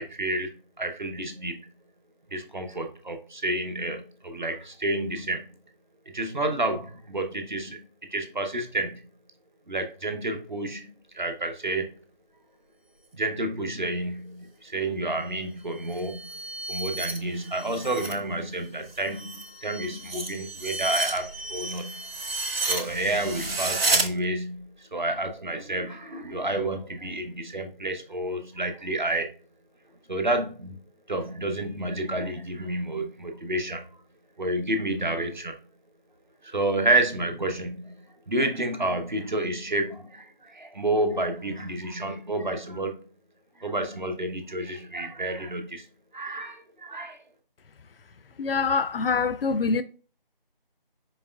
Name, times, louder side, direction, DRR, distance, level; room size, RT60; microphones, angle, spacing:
voice 1, 0.0-1.6 2.3-5.5 6.1-7.8 8.1-9.0 9.7-11.9 13.1-16.2 16.7-22.0 22.7-29.3 30.1-30.8 31.1-34.0 34.4-35.5 36.4-42.9 43.6-45.8 46.1-47.2, right 2 dB, 55° right, 0.8 m, -30 dB
sound 1, 15.8-18.2 18.6-24.1, right 3 dB, 90° right, 0.9 m, -31 dB
voice 2, 48.4-49.8, left 5 dB, 75° left, 0.5 m, -24 dB
4.8 x 3.1 x 2.3 m
figure-of-eight pair, 175°, 29 cm